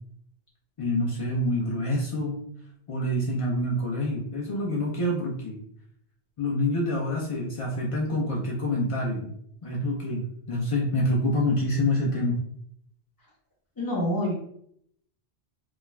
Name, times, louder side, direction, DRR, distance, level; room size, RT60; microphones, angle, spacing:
voice 1, 0.8-2.4 2.9-5.6 6.4-9.3 9.6-12.4, left 1 dB, 60° left, -3 dB, 0.3 m, -27 dB
voice 2, 13.8-14.3, left 1 dB, 20° left, -3 dB, 0.7 m, -26 dB
2.3 x 2.2 x 3.1 m, 0.70 s
omnidirectional pair, 1.1 m